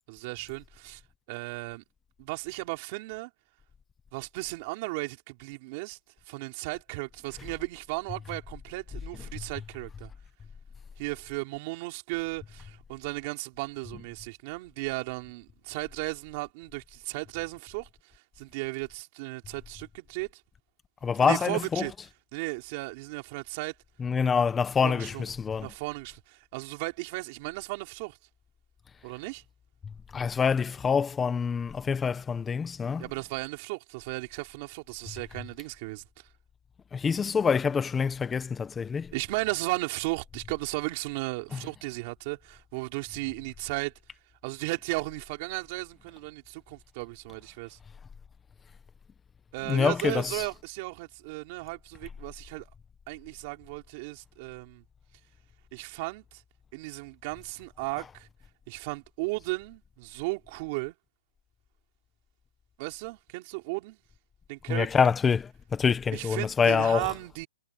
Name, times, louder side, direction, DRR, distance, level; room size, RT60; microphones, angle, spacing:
voice 1, 0.1-1.0 1.3-1.8 2.2-3.3 4.1-6.0 6.3-10.1 11.0-20.3 21.2-21.9 22.3-23.8 24.8-25.3 25.6-28.2 29.0-29.4 33.0-36.0 39.1-43.9 44.4-47.8 49.5-52.7 53.1-54.8 55.7-56.4 56.7-58.3 58.7-61.0 62.8-64.0 64.5-65.1 66.1-67.5, right 24 dB, 35° right, 3.8 m, -35 dB
voice 2, 21.0-21.9 24.0-25.7 30.1-33.0 36.9-39.1 41.5-41.6 49.6-50.4 64.7-65.4 65.7-67.1, left 6 dB, 10° left, 1.2 m, -26 dB
hypercardioid pair, 160°, 0 cm